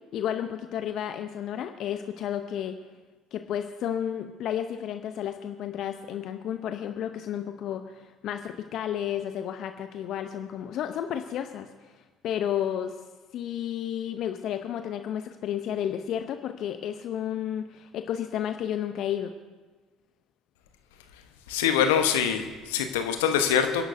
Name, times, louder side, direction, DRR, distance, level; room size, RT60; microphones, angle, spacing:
voice 1, 0.1-2.8 3.3-13.0 13.3-19.3, left 10 dB, 55° left, 8 dB, 0.7 m, -32 dB
voice 2, 21.5-23.8, left 8 dB, 75° left, 7 dB, 1.0 m, -24 dB
29.5 x 11.0 x 2.7 m, 1.3 s
hypercardioid pair, 60°, 0 cm